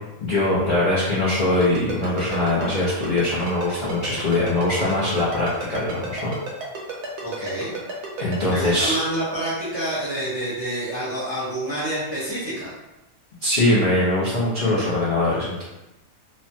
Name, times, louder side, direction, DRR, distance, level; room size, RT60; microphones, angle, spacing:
voice 1, 0.2-6.3 8.2-9.0 13.4-15.6, left 2 dB, 55° left, -10 dB, 0.5 m, -22 dB
Ringtone, 1.6-8.4, right 5 dB, 70° right, 1.2 m, -32 dB
voice 2, 7.2-7.8 8.5-12.7, right 1 dB, 25° right, -10 dB, 0.6 m, -28 dB
3.2 x 2.1 x 2.7 m, 0.98 s
omnidirectional pair, 1.8 m